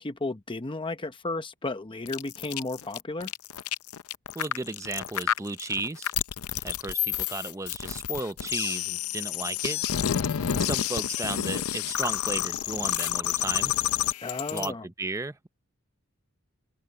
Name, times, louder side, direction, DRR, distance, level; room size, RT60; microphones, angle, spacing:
voice 1, 0.0-3.3 14.2-14.9, left 2 dB, 25° left, 0.8 m, -33 dB
sound 1, 2.1-14.7, left 10 dB, 85° left, 0.5 m, -29 dB
voice 2, 4.3-6.1 6.6-9.8 10.4-13.7 14.5-15.5, right 2 dB, 15° right, 0.6 m, -34 dB
open air
head